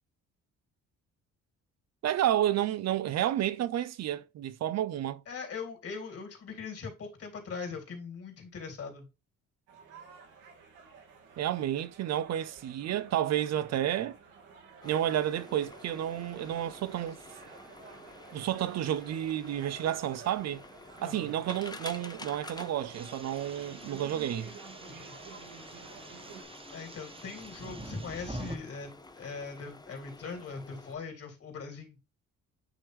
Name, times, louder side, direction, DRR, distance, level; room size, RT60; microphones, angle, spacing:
voice 1, 2.0-5.2 11.4-14.2 14.8-17.2 18.3-20.6 21.0-24.5, right 11 dB, 60° right, 0.5 m, -31 dB
voice 2, 5.3-9.1 21.0-21.3 24.9-25.1 26.7-32.0, left 5 dB, 50° left, 3.0 m, -41 dB
sound 1, 9.7-26.4, right 5 dB, 90° right, 1.9 m, -52 dB
sound 2, 14.8-31.0, left 2 dB, 15° left, 0.7 m, -50 dB
sound 3, 22.9-28.6, right 2 dB, 20° right, 1.2 m, -46 dB
9.1 x 3.1 x 3.4 m
cardioid pair, 90°, 30 cm